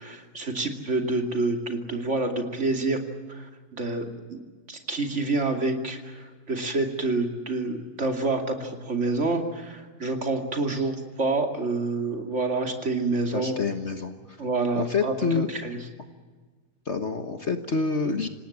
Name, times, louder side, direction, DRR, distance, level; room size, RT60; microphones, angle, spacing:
voice 1, 0.0-3.0 3.3-4.4 4.7-13.5 14.4-15.1 15.6-15.8, right 3 dB, 45° right, 4 dB, 2.9 m, -28 dB
voice 2, 13.3-14.4 14.7-15.5 16.8-18.3, left 4 dB, 45° left, 7 dB, 1.5 m, -27 dB
27.0 x 18.5 x 8.7 m, 1.4 s
omnidirectional pair, 1.8 m